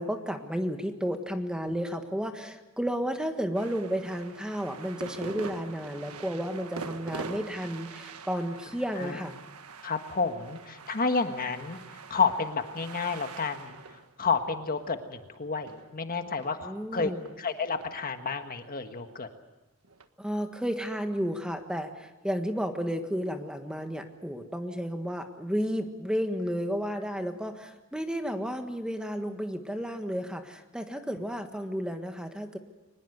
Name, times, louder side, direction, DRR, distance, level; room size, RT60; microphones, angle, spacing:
voice 1, 0.0-9.4 16.6-17.3 20.2-32.6, equal, 5° right, 6 dB, 1.5 m, -32 dB
sound 1, 3.5-16.8 17.3-19.2 19.8-20.1, right 4 dB, 80° right, 1.5 m, -45 dB
voice 2, 9.8-13.8 14.2-17.1 17.4-19.3, left 4 dB, 40° left, 7 dB, 1.5 m, -30 dB
23.5 x 21.0 x 8.0 m, 1.0 s
head